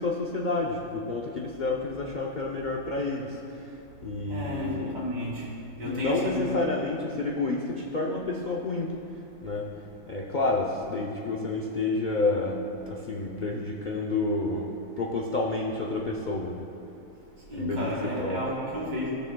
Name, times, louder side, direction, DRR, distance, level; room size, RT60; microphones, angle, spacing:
voice 1, 0.0-3.3 4.0-5.0 5.8-8.9 9.4-9.7 10.1-12.6 12.9-14.7 15.0-16.7 17.5-18.4, left 3 dB, 65° left, -2 dB, 0.4 m, -29 dB
voice 2, 4.2-6.6 17.5-19.1, left 1 dB, 70° right, -6 dB, 2.7 m, -32 dB
16.0 x 6.8 x 2.2 m, 2.7 s
omnidirectional pair, 1.7 m